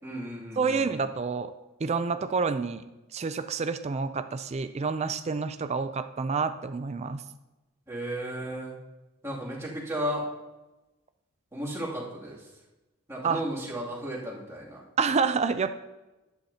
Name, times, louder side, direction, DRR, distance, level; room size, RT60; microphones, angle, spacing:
voice 1, 0.0-1.0 7.9-8.8 9.2-10.2 11.5-12.4 13.1-14.8, equal, 15° right, -6 dB, 2.5 m, -34 dB
voice 2, 0.6-1.5 1.8-2.8 3.1-7.2 13.2-13.4 15.0-15.7, right 5 dB, 30° right, 10 dB, 0.4 m, -28 dB
11.5 x 10.5 x 2.8 m, 1.0 s
head